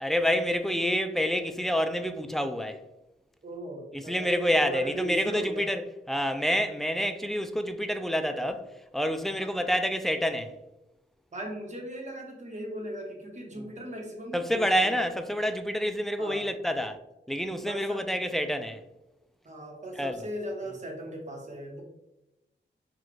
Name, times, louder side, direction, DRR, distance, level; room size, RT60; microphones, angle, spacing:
voice 1, 0.0-2.8 3.9-5.8 6.1-8.7 8.9-10.5 14.3-17.0 17.3-18.8 20.0-20.2, equal, ahead, 0.3 m, -28 dB
voice 2, 3.4-5.7 9.4-9.5 11.3-15.0 16.2-16.5 17.6-18.0 19.4-21.8, right 1 dB, 40° right, 1.0 m, -38 dB
5.9 x 2.4 x 3.1 m
wide cardioid pair, 135°, 19 cm